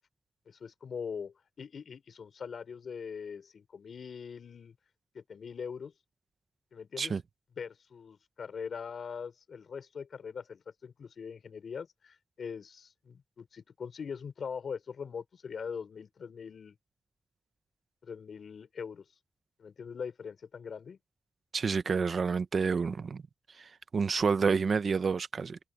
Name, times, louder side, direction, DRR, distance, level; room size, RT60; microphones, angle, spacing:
voice 1, 0.5-4.7 5.1-5.9 6.7-7.2 7.6-16.8 18.0-19.0 19.6-21.0, left 6 dB, 75° left, 4.9 m, -42 dB
voice 2, 21.5-23.2 23.6-25.6, right 5 dB, 65° right, 0.9 m, -29 dB
cardioid pair, 55°, 0 cm